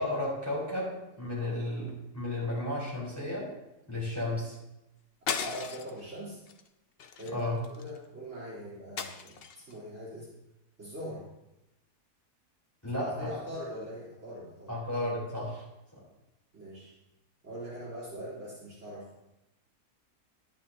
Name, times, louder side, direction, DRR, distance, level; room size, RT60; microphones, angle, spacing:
voice 1, 0.0-3.5 3.9-4.5 7.3-7.6 12.8-13.3 14.7-15.6, left 1 dB, 10° left, -7 dB, 4.5 m, -33 dB
sound 1, 5.3-6.0 6.5-6.7 7.0-8.0 9.0-9.7, left 6 dB, 65° left, 0.5 m, -36 dB
voice 2, 5.4-6.4 7.2-10.3 10.8-11.3 12.9-14.7 16.5-16.9 17.4-19.1, equal, 45° right, -10 dB, 4.1 m, -42 dB
11.5 x 10.5 x 3.0 m, 0.91 s
omnidirectional pair, 1.7 m